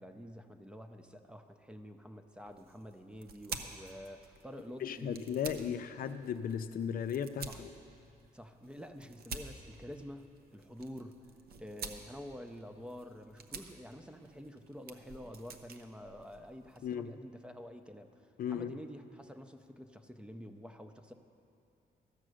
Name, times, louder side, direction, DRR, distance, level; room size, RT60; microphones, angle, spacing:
voice 1, 0.0-5.3 7.5-7.6 8.3-11.2 11.6-21.1, equal, 5° right, 7 dB, 0.5 m, -48 dB
sound 1, 2.4-16.9, right 5 dB, 70° right, 0.8 m, -50 dB
voice 2, 4.8-7.7 16.8-17.1 18.4-18.7, left 8 dB, 60° left, 10 dB, 0.5 m, -36 dB
13.0 x 7.6 x 6.3 m, 2.5 s
wide cardioid pair, 145°, 17 cm